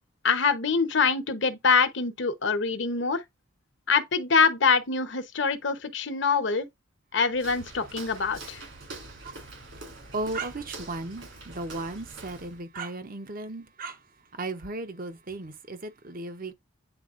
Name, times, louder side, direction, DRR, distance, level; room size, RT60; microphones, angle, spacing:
voice 1, 0.2-3.2 3.9-6.7 7.1-8.6, left 5 dB, 60° left, 1.0 m, -24 dB
Walk footsteps, 7.3-12.6, right 2 dB, 65° right, 3.0 m, -45 dB
voice 2, 8.8-14.1 14.3-16.5, right 2 dB, 45° right, 0.9 m, -36 dB
8.9 x 4.2 x 2.5 m
head